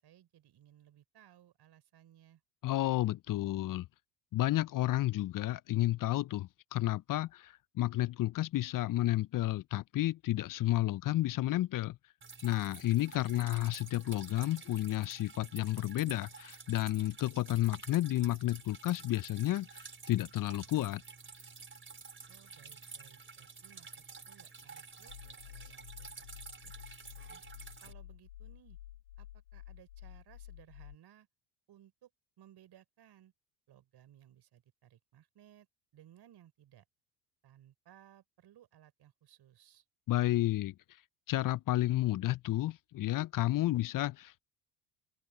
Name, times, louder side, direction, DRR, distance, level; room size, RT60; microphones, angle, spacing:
voice 1, 0.0-2.4 13.2-13.6 22.3-26.7 27.3-27.4 27.8-28.8 29.2-31.3 31.7-32.1 32.4-33.3 33.7-35.7 35.9-36.8 37.4-39.8, right 11 dB, 50° right, 5.7 m, -61 dB
voice 2, 2.6-3.9 4.3-12.0 12.4-21.0 40.1-40.7 41.3-44.4, left 15 dB, 40° left, 0.7 m, -31 dB
Drip, 12.2-27.9, right 5 dB, 25° right, 4.5 m, -51 dB
sound 1, 25.1-31.0, left 13 dB, 85° left, 3.7 m, -51 dB
open air
hypercardioid pair, 60°, 49 cm